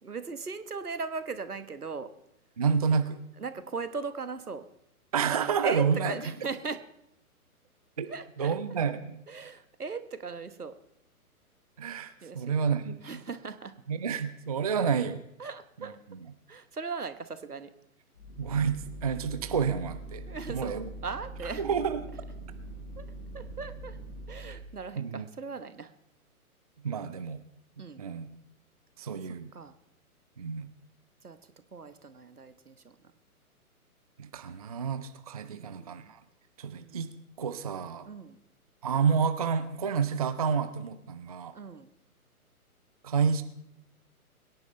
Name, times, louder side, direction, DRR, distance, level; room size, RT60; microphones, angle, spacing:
voice 1, 0.0-2.1 3.4-4.6 5.6-6.8 8.1-8.5 9.3-10.7 12.2-12.4 13.0-13.7 15.4-16.0 16.5-17.7 20.3-21.6 23.0-23.1 23.3-24.0 24.3-25.9 27.8-28.0 29.5-29.7 31.2-31.4 31.7-32.9 35.5-36.1 36.8-37.0 38.1-38.4 41.5-41.9, right 4 dB, 80° right, 11 dB, 1.3 m, -38 dB
voice 2, 2.6-3.2 5.1-6.1 8.0-8.1 8.4-9.2 11.8-13.0 13.9-15.2 15.8-16.2 18.4-20.2 20.5-20.9 21.4-22.2 24.5-24.6 25.0-25.2 26.8-27.4 28.0-28.3 29.0-29.5 30.4-30.7 34.2-36.2 36.6-37.1 37.4-38.1 38.8-41.5 43.0-43.4, right 6 dB, 25° right, 10 dB, 0.4 m, -29 dB
sound 1, 18.1-24.7, right 2 dB, 80° left, 5.3 m, -43 dB
23.0 x 10.5 x 3.3 m, 0.81 s
figure-of-eight pair, 125°, 45 cm